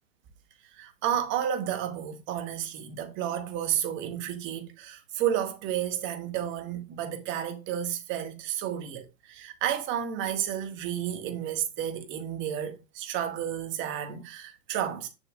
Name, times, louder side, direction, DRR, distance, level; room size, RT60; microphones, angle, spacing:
voice 1, 0.7-15.1, right 10 dB, 25° right, 1.1 m, -31 dB
7.1 x 6.8 x 2.4 m
hypercardioid pair, 130°, 49 cm